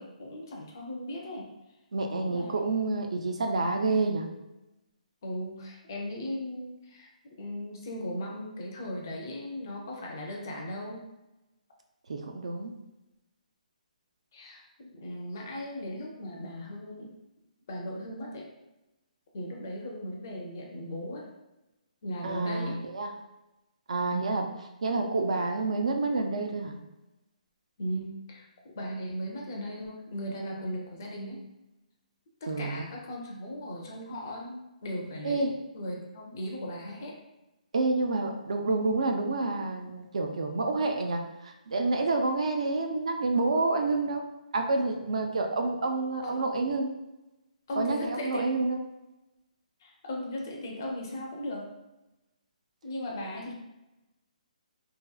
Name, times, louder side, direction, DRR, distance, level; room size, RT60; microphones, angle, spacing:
voice 1, 0.0-1.5 2.2-2.5 5.2-7.1 7.4-11.0 14.3-17.1 17.7-18.5 19.3-21.3 22.0-22.8 24.1-24.5 27.8-28.5 28.8-31.5 32.4-37.1 46.2-46.5 47.7-48.5 49.8-51.7 52.8-53.5, equal, 25° left, -1 dB, 0.4 m, -37 dB
voice 2, 1.9-4.2 12.1-12.7 22.2-23.1 23.9-24.5 24.8-26.8 32.5-32.8 35.2-35.5 37.7-44.2 44.5-46.9 47.8-48.8, right 3 dB, 50° right, 3 dB, 0.4 m, -28 dB
2.8 x 2.7 x 2.3 m, 0.97 s
hypercardioid pair, 180°, 4 cm